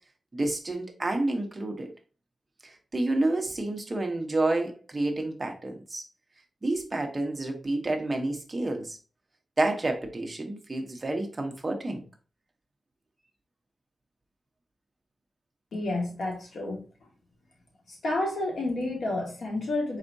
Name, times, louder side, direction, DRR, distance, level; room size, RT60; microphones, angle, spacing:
voice 1, 0.3-1.9 2.9-6.0 6.6-9.0 9.6-12.0, right 2 dB, 20° right, 0.8 m, -29 dB
voice 2, 15.7-16.8 17.9-20.0, left 2 dB, 85° left, 1.7 m, -30 dB
4.4 x 4.2 x 2.6 m
wide cardioid pair, 170°, 0 cm